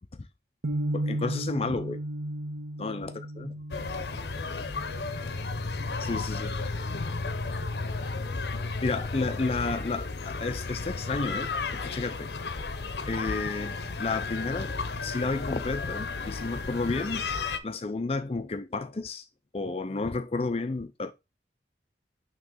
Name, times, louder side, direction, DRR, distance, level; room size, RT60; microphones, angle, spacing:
sound 1, 0.6-6.7, right 1 dB, 85° right, 0.8 m, -36 dB
voice 1, 0.9-2.0 2.8-3.6 6.0-6.5 8.8-12.6 13.1-17.2 17.6-19.3 19.5-21.1, left 3 dB, 35° left, 0.4 m, -32 dB
sound 2, 3.7-17.6, left 3 dB, 70° left, 0.7 m, -33 dB
voice 2, 4.0-5.8 7.3-8.4, equal, 40° right, 2.0 m, -54 dB
6.1 x 3.0 x 5.3 m
head